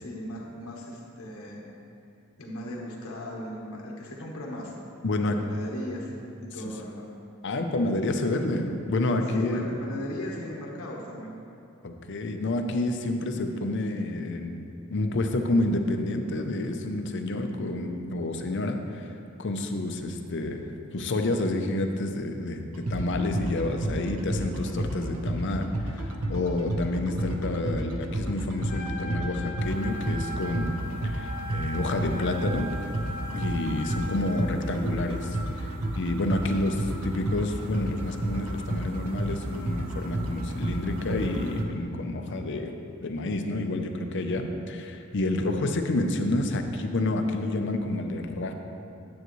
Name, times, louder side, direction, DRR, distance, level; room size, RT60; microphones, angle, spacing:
voice 1, 0.0-1.6 2.4-4.7 5.1-6.1 6.4-7.1 9.3-11.4, left 1 dB, 75° left, -3 dB, 1.1 m, -37 dB
voice 2, 5.0-5.4 7.4-9.7 11.8-14.6 14.9-20.6 20.9-30.8 31.0-32.7 33.3-48.5, left 2 dB, 55° left, 5 dB, 0.6 m, -29 dB
sound 1, 22.7-41.7, right 1 dB, 90° right, 0.8 m, -32 dB
Trumpet, 28.6-34.4, equal, 40° left, 1.0 m, -39 dB
9.4 x 7.8 x 3.1 m, 2.6 s
head